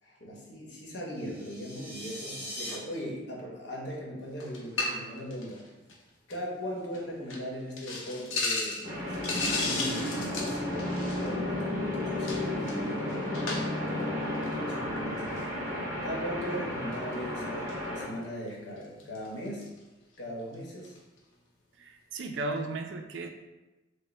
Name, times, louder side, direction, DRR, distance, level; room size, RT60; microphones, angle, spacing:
voice 1, 0.0-5.6 6.3-10.9 11.2-13.3 13.9-15.6 16.0-17.7 17.9-19.7 20.2-20.9, equal, 60° left, -3 dB, 1.0 m, -39 dB
sound 1, 1.2-2.7, equal, 25° left, 1.3 m, -41 dB
sound 2, 4.4-5.0 5.3-5.6 5.9-6.0 6.3-6.4 6.9-7.0 7.3-7.4 7.8-11.4 12.2-13.9 14.3-14.5 15.2-15.5 16.9-17.1 17.7-17.8 18.5-18.6 18.8-19.8 20.5-20.6 20.8-21.0, left 3 dB, 90° left, 0.8 m, -35 dB
sound 3, 8.8-18.1, left 1 dB, 15° right, 1.5 m, -33 dB
voice 2, 21.8-23.3, right 2 dB, 70° right, 4 dB, 0.4 m, -35 dB
4.9 x 2.1 x 3.2 m, 1.1 s
head